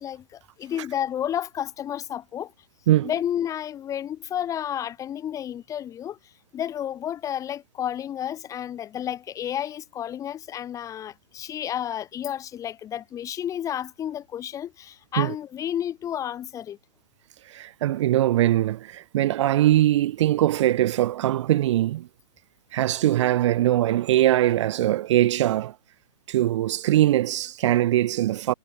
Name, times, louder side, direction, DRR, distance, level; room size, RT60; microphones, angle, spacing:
voice 1, 0.0-2.5 3.0-16.8, left 10 dB, 15° left, 1.6 m, -31 dB
voice 2, 17.5-22.1 22.7-25.7 26.3-28.5, right 13 dB, 50° right, 0.8 m, -21 dB
hypercardioid pair, 145°, 19 cm